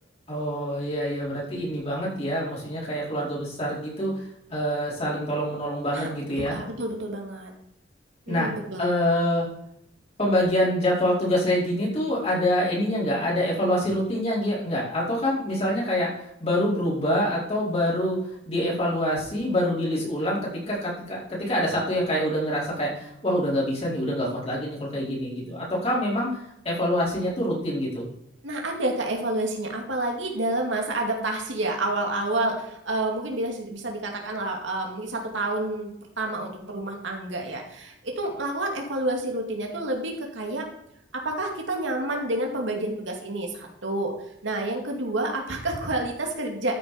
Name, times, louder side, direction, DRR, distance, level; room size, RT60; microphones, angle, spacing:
voice 1, 0.3-4.1 4.5-6.6 8.3-8.5 8.8-9.5 10.2-16.1 16.4-18.2 18.5-20.4 20.7-26.4 26.6-28.0, equal, 35° left, -5 dB, 4.8 m, -25 dB
voice 2, 6.4-7.5 8.3-8.8 28.4-40.7 41.1-44.1 44.4-46.7, right 2 dB, 80° right, 1 dB, 2.3 m, -29 dB
13.5 x 6.4 x 5.2 m, 0.77 s
head